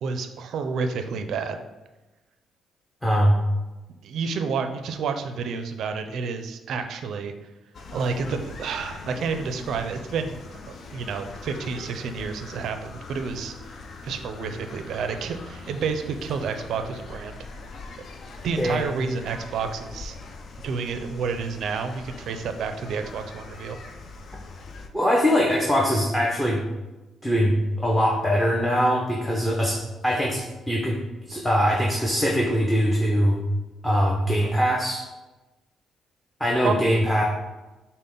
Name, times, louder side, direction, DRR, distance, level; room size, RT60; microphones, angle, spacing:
voice 1, 0.0-1.6 4.0-7.3 7.9-10.4 10.7-13.5 14.0-17.4 18.4-20.2 20.6-23.8 36.6-36.9, right 5 dB, 70° right, 7 dB, 0.4 m, -29 dB
voice 2, 3.0-3.4 18.5-18.9 24.9-26.6 27.2-31.0 31.3-33.4 33.8-35.1 36.4-37.2, equal, 5° left, -3 dB, 0.7 m, -22 dB
sound 1, 7.7-24.9, left 3 dB, 55° left, 0.5 m, -42 dB
5.4 x 2.1 x 3.8 m, 1.1 s
cardioid pair, 90°, 0 cm